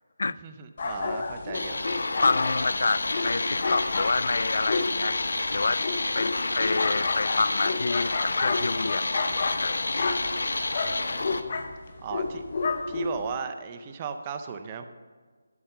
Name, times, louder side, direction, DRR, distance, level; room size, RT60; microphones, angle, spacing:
voice 1, 0.4-1.8 10.8-11.4 12.0-12.4 12.9-14.8, right 6 dB, 15° right, 8 dB, 0.5 m, -36 dB
sound 1, 0.8-13.4, left 4 dB, 35° left, 0.8 m, -31 dB
sound 2, 1.5-11.4, left 2 dB, 80° left, 0.9 m, -29 dB
voice 2, 2.2-5.2 5.5-5.8 6.1-9.9, left 3 dB, 55° left, 18 dB, 0.3 m, -28 dB
12.5 x 7.1 x 5.5 m, 1.5 s
figure-of-eight pair, 175°, 0 cm